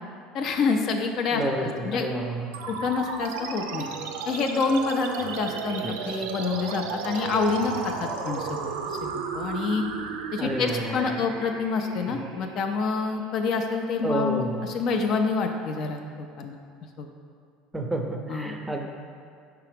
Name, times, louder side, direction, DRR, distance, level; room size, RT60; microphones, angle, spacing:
voice 1, 0.3-2.1 2.7-3.9 4.3-9.8 10.3-16.6 17.0-17.1 18.3-18.6, left 4 dB, 55° left, 4 dB, 0.4 m, -27 dB
voice 2, 1.3-2.5 5.8-6.0 10.4-11.3 12.1-12.2 14.0-14.7 17.7-18.9, right 1 dB, 10° right, 2 dB, 0.5 m, -30 dB
sound 1, 2.5-13.5, right 5 dB, 80° right, 0.3 m, -34 dB
4.7 x 3.4 x 3.3 m, 2.3 s
hypercardioid pair, 85°, 0 cm